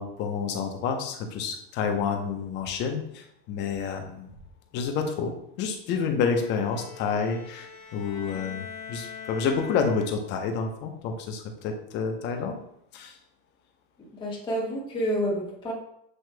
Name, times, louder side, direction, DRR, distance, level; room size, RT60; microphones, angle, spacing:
voice 1, 0.0-4.3 4.7-12.6 12.9-13.2, left 5 dB, 35° left, 4 dB, 0.8 m, -29 dB
Bowed string instrument, 6.3-10.5, left 6 dB, 70° left, 1.3 m, -43 dB
voice 2, 14.0-15.7, equal, 15° left, -4 dB, 1.4 m, -29 dB
7.8 x 3.0 x 2.2 m, 0.76 s
supercardioid pair, 145°, 30 cm